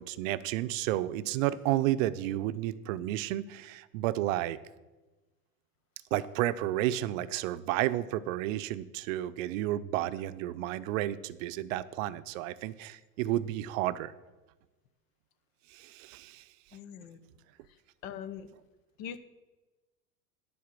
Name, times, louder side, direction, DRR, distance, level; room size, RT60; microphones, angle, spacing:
voice 1, 0.0-4.6 6.1-14.1 15.7-16.4, right 14 dB, 60° right, 14 dB, 0.7 m, -31 dB
voice 2, 16.7-17.2 18.0-18.5 19.0-19.2, left 9 dB, 60° left, 10 dB, 1.1 m, -41 dB
10.0 x 4.7 x 7.4 m, 1.2 s
hypercardioid pair, 100°, 44 cm